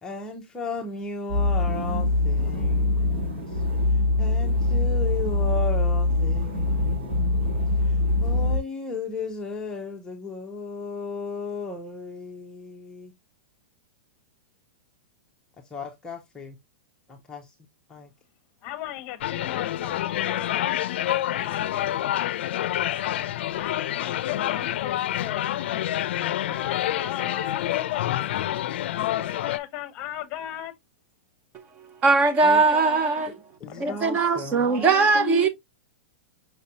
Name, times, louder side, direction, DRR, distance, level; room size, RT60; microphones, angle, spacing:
voice 1, 0.0-3.5 4.2-7.6 8.2-13.1 15.7-16.6 17.1-17.5 17.9-18.1 32.4-33.0 33.6-35.5, left 3 dB, 10° left, 0.7 m, -35 dB
sound 1, 1.3-8.6, left 2 dB, 70° right, 2.8 m, -23 dB
voice 2, 18.6-20.8 21.1-22.6 23.6-25.4 26.4-28.0 29.0-30.7 33.7-34.2, left 13 dB, 30° left, 1.0 m, -35 dB
sound 2, 19.2-29.6, left 12 dB, 65° left, 0.5 m, -28 dB
voice 3, 32.0-33.4 33.8-35.5, right 4 dB, 20° right, 0.8 m, -20 dB
5.9 x 3.2 x 2.7 m
supercardioid pair, 155°, 7 cm